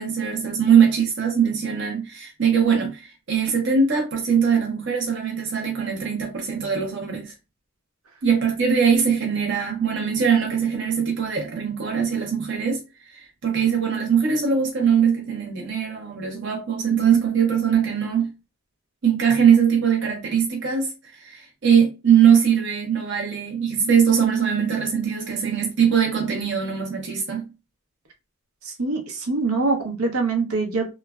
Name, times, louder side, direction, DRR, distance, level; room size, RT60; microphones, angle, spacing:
voice 1, 0.0-7.3 8.2-18.3 19.0-27.4, right 7 dB, 55° right, 0.7 m, -21 dB
voice 2, 28.6-30.9, right 3 dB, 90° right, 0.7 m, -24 dB
3.1 x 2.1 x 2.3 m
head